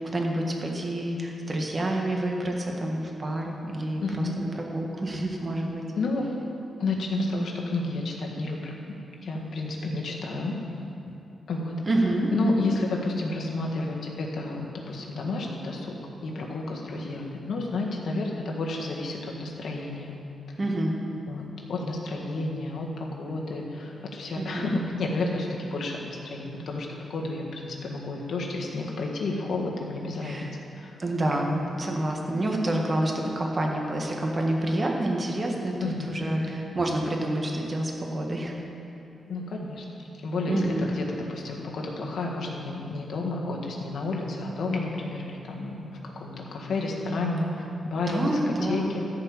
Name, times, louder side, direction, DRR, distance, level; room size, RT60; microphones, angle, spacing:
voice 1, 0.1-5.8 11.8-12.7 20.6-21.0 24.3-24.7 30.2-30.5 31.0-38.5 40.5-40.9 48.1-48.9, right 1 dB, 30° right, 1 dB, 1.6 m, -28 dB
voice 2, 4.0-4.3 6.0-6.3 6.8-8.7 9.2-10.6 11.5-11.7 12.3-15.9 16.2-20.1 21.3-30.3 30.8-31.0 31.4-31.6 35.8-36.5 39.3-39.9 40.2-47.5 47.8-49.0, left 2 dB, 70° left, -1 dB, 1.7 m, -31 dB
13.5 x 5.3 x 7.2 m, 2.9 s
cardioid pair, 90°, 0 cm